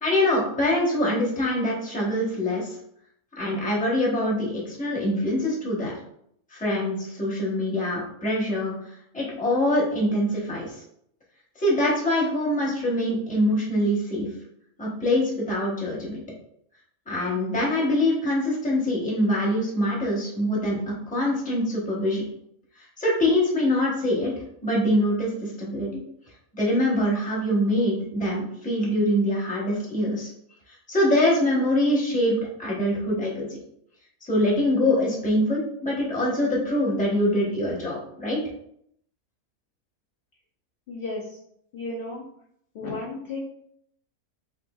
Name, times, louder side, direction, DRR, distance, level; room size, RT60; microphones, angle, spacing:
voice 1, 0.0-2.8 3.4-5.9 6.5-8.7 9.1-10.7 11.6-14.3 14.8-16.2 17.1-22.2 23.0-24.3 24.6-26.0 26.5-30.3 30.9-33.5 34.2-38.4, left 1 dB, 10° left, -5 dB, 0.6 m, -24 dB
voice 2, 40.9-41.4 41.7-42.2 42.7-43.4, left 2 dB, 70° left, -2 dB, 0.5 m, -33 dB
3.8 x 2.5 x 2.2 m, 0.71 s
omnidirectional pair, 1.5 m